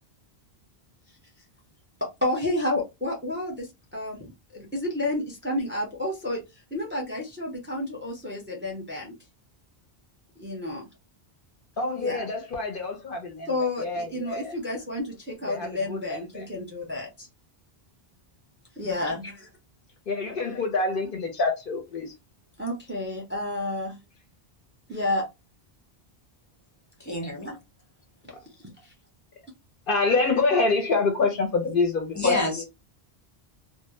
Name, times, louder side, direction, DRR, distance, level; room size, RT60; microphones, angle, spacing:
voice 1, 2.0-6.4 6.7-9.1 10.4-10.9 12.0-12.3 13.5-17.3 18.8-19.5 22.6-24.0 24.9-25.3 27.4-27.6 28.8-28.9, left 1 dB, 15° right, 0.6 m, -30 dB
voice 2, 11.8-14.6 15.5-16.5 18.8-19.2 20.1-22.1 28.3-28.4 29.9-32.6, left 3 dB, 60° left, 0.8 m, -27 dB
voice 3, 27.0-27.5 32.1-32.6, left 3 dB, 20° left, 0.8 m, -28 dB
2.0 x 2.0 x 3.0 m
omnidirectional pair, 1.0 m